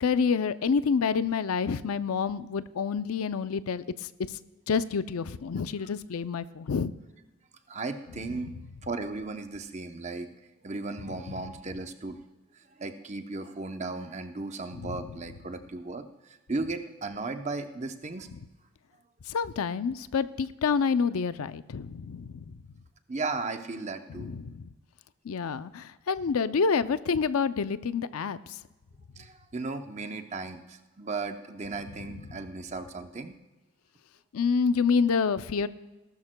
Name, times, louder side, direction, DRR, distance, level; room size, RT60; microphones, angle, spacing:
voice 1, 0.0-4.4 4.7-6.9 8.3-8.5 11.1-11.2 14.7-15.2 18.3-18.4 19.3-22.6 24.1-24.7 25.2-28.6 31.9-32.3 34.3-35.7, left 5 dB, 80° left, 14 dB, 0.5 m, -28 dB
voice 2, 7.7-8.5 8.8-10.3 10.6-12.2 12.8-16.0 16.5-18.3 23.1-24.3 29.2-33.3, right 3 dB, 30° right, 7 dB, 0.7 m, -35 dB
19.0 x 12.5 x 2.2 m, 1.1 s
head